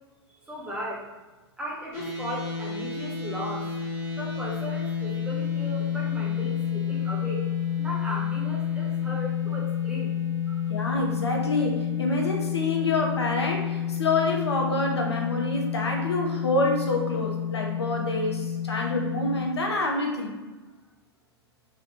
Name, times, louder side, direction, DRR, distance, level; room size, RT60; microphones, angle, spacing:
voice 1, 0.4-1.1 1.6-3.7 4.1-7.5 7.8-10.2 10.5-10.7, equal, 5° right, -4 dB, 0.6 m, -37 dB
sound 1, 1.9-19.4, left 8 dB, 35° left, 0.7 m, -30 dB
voice 2, 10.7-20.4, left 2 dB, 75° left, 1 dB, 0.6 m, -27 dB
2.8 x 2.0 x 3.1 m, 1.2 s
figure-of-eight pair, 105°, 14 cm